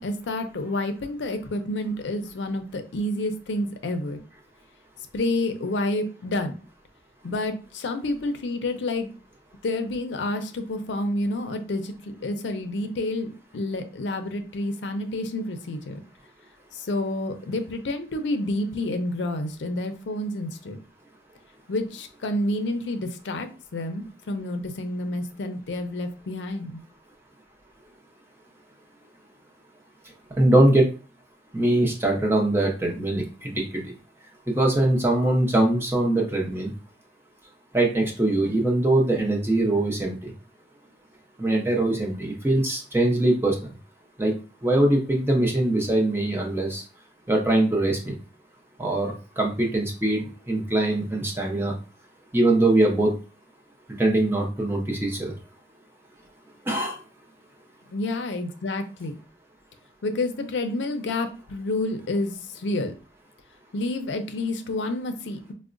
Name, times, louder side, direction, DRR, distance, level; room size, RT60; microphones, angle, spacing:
voice 1, 0.0-4.2 5.1-6.5 7.2-9.1 9.6-16.0 16.7-20.8 21.7-26.8 57.9-59.1 60.0-62.9 63.7-65.5, left 2 dB, 85° left, 7 dB, 0.5 m, -29 dB
voice 2, 30.4-30.9 31.5-33.8 34.5-36.7 37.7-40.3 41.4-43.6 44.2-44.3 44.6-46.8 47.3-48.1 48.8-51.7 52.3-53.1 54.0-55.4 56.7-57.0, right 1 dB, 15° right, 0 dB, 0.6 m, -22 dB
4.6 x 2.1 x 2.5 m, 0.36 s
head